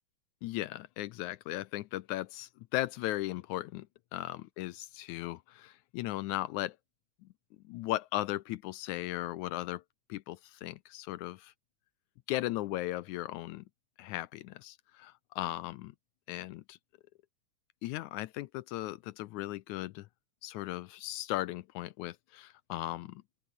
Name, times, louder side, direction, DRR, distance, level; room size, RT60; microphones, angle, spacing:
voice 1, 0.4-6.8 7.7-9.8 10.1-11.5 12.3-13.6 14.0-16.0 16.3-16.8 17.8-20.1 20.4-23.2, left 16 dB, 75° left, 1.9 m, -37 dB
open air
omnidirectional pair, 3.6 m